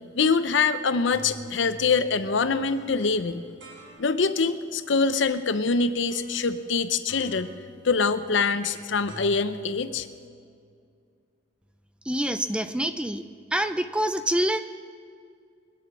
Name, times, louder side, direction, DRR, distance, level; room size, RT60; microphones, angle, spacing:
voice 1, 0.1-3.5 4.0-7.5 7.8-10.1, left 4 dB, 65° left, 12 dB, 0.7 m, -24 dB
sound 1, 0.8-4.4 5.1-5.6 6.1-6.8 7.1-10.6, equal, 80° right, 4.4 m, -48 dB
voice 2, 12.1-13.2 13.5-14.6, right 1 dB, 5° right, 10 dB, 0.4 m, -26 dB
22.5 x 9.6 x 6.0 m, 2.2 s
head